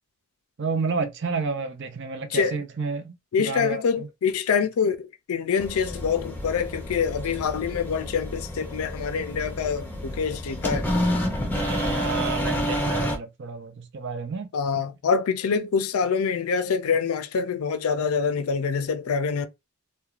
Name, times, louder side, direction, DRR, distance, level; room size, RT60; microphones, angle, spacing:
voice 1, 0.6-4.1 11.5-14.5, right 4 dB, 55° right, 0.5 m, -30 dB
voice 2, 3.3-10.9 14.5-19.5, left 6 dB, 85° left, 0.4 m, -25 dB
sound 1, 5.6-13.2, equal, 10° left, 0.5 m, -29 dB
3.1 x 2.2 x 2.4 m
head